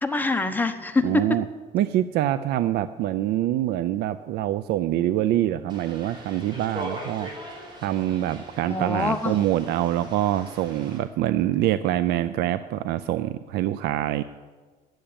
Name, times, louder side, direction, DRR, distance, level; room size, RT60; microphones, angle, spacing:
voice 1, 0.0-1.4 8.7-9.4, left 3 dB, 10° left, 6 dB, 0.9 m, -25 dB
voice 2, 1.0-1.4 1.7-7.3 7.8-14.2, right 13 dB, 75° right, 12 dB, 0.4 m, -25 dB
sound 1, 5.7-11.0, right 1 dB, 25° right, 4.4 m, -40 dB
10.0 x 7.8 x 8.7 m, 1.4 s
cardioid pair, 110°, 17 cm